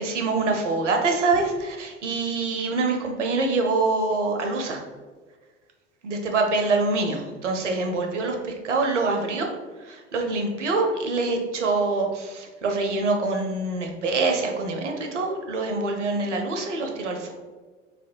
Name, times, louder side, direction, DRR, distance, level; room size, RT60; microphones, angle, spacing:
voice 1, 0.0-4.8 6.0-9.5 9.9-17.3, right 3 dB, 80° right, 3 dB, 0.6 m, -25 dB
4.1 x 2.4 x 2.7 m, 1.4 s
figure-of-eight pair, 70°, 35 cm